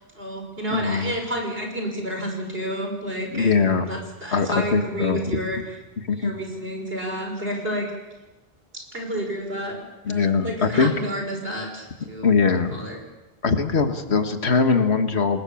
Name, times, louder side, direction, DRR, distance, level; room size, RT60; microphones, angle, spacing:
voice 1, 0.1-3.5 3.8-5.6 6.1-7.9 8.9-9.8 10.1-12.3 12.7-13.0, equal, 65° right, 2 dB, 5.7 m, -30 dB
voice 2, 0.7-1.1 3.3-3.9 4.3-5.4 6.1-6.3 10.0-10.9 12.0-12.8 13.4-15.4, left 5 dB, 85° left, 7 dB, 2.0 m, -21 dB
28.5 x 19.5 x 7.1 m, 1.1 s
omnidirectional pair, 1.1 m